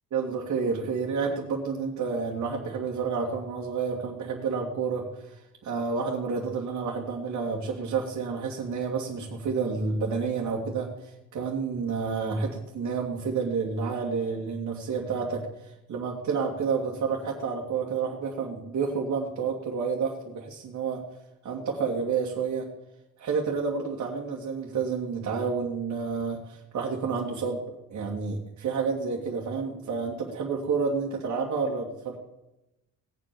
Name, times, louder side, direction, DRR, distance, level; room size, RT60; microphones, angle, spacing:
voice 1, 0.1-21.0 21.4-22.7 23.2-27.6 27.9-32.2, right 5 dB, 70° right, -2 dB, 2.6 m, -30 dB
18.5 x 7.9 x 7.0 m, 0.94 s
cardioid pair, 90°, 30 cm